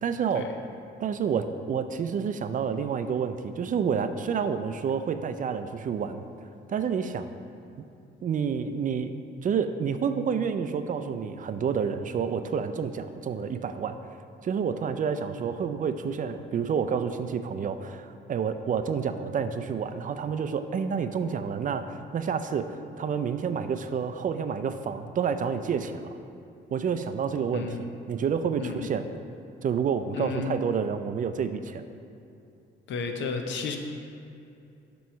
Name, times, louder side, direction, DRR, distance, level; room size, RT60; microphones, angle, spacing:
voice 1, 0.0-0.5 1.0-6.2 6.7-7.3 8.2-9.1 9.4-14.0 14.4-22.7 23.0-26.1 26.7-29.1 29.6-31.8, right 6 dB, 40° right, 9 dB, 0.4 m, -29 dB
voice 2, 28.6-28.9 30.1-30.5 32.9-33.8, left 5 dB, 70° left, 5 dB, 0.7 m, -32 dB
7.5 x 3.1 x 5.6 m, 2.6 s
cardioid pair, 90°, 20 cm